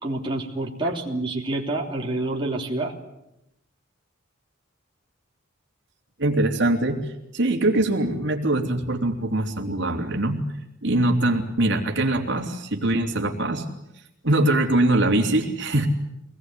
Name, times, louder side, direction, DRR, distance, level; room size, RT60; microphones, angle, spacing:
voice 1, 0.0-2.9, right 2 dB, 25° right, -1 dB, 3.2 m, -27 dB
voice 2, 6.2-10.4 10.8-13.7 14.2-15.9, right 1 dB, 60° right, 2 dB, 3.2 m, -22 dB
25.0 x 20.0 x 9.9 m, 0.86 s
head